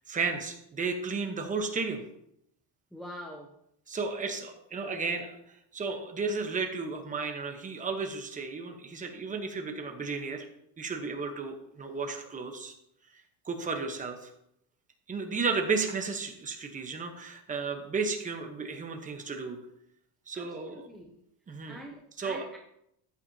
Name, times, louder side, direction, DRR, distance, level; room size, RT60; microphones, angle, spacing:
voice 1, 0.1-2.0 3.9-5.4 5.7-10.5 10.8-12.7 13.5-14.3 15.1-19.6 20.3-20.9 21.5-21.8 22.2-22.4, right 4 dB, 15° right, 4 dB, 1.0 m, -33 dB
voice 2, 2.9-3.5 20.3-21.2 21.6-22.6, equal, ahead, 1 dB, 0.3 m, -45 dB
13.5 x 8.8 x 2.8 m, 0.77 s
cardioid pair, 175°, 46 cm